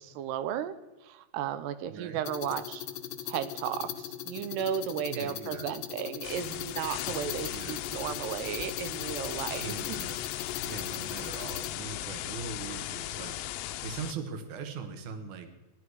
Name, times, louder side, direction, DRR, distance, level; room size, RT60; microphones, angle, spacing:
voice 1, 0.0-0.7 1.0-2.9 3.2-10.0, right 9 dB, 80° right, 13 dB, 2.8 m, -34 dB
voice 2, 1.9-2.2 5.1-5.7 7.5-7.8 9.6-10.2 10.6-13.3 13.8-15.5, right 6 dB, 60° right, 8 dB, 2.2 m, -41 dB
sound 1, 2.2-11.7, left 11 dB, 70° left, 2.8 m, -39 dB
sound 2, 6.2-14.1, left 14 dB, 85° left, 2.8 m, -37 dB
16.5 x 11.5 x 4.7 m, 1.1 s
omnidirectional pair, 4.9 m